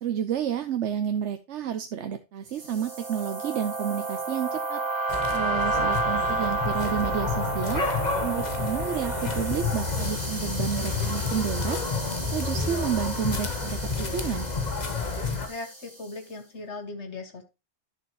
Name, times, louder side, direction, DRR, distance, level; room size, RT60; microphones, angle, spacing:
voice 1, 0.0-4.8 5.3-7.8 8.2-11.8 12.3-14.5, right 9 dB, 85° right, 8 dB, 1.1 m, -30 dB
sound 1, 2.6-16.0, right 3 dB, 35° right, 2.3 m, -32 dB
sound 2, 5.1-15.5, left 4 dB, 40° left, 1.3 m, -30 dB
voice 2, 15.5-17.4, left 3 dB, 75° left, 6 dB, 1.9 m, -38 dB
11.5 x 6.7 x 2.9 m, 0.27 s
omnidirectional pair, 1.2 m